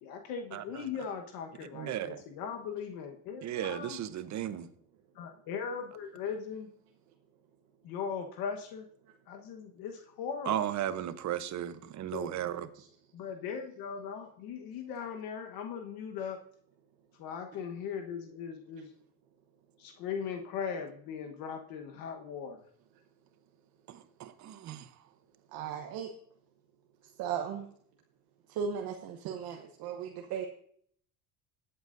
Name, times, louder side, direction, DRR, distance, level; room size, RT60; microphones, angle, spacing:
voice 1, 0.0-4.0 5.1-6.7 7.8-8.9 9.3-10.7 12.1-12.3 13.1-16.4 17.2-18.9 19.8-22.6, left 6 dB, 75° left, 4 dB, 1.3 m, -39 dB
voice 2, 1.8-2.2 3.4-4.7 10.5-12.7 24.2-24.8, right 11 dB, 50° right, 12 dB, 0.9 m, -35 dB
voice 3, 25.5-26.1 27.2-27.7 28.5-30.5, right 7 dB, 75° right, 2 dB, 1.1 m, -36 dB
19.5 x 8.1 x 2.6 m, 0.64 s
supercardioid pair, 95°, 36 cm